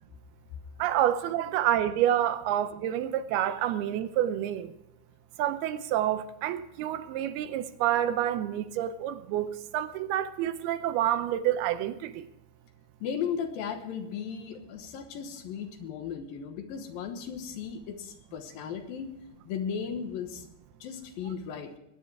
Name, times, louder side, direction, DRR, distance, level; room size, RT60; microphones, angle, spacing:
voice 1, 0.8-4.7 5.4-12.3, right 11 dB, 80° right, 2.6 m, -28 dB
voice 2, 13.0-19.1 19.4-20.5 20.8-21.7, left 7 dB, 70° left, 2.7 m, -36 dB
20.5 x 10.0 x 4.7 m
omnidirectional pair, 4.6 m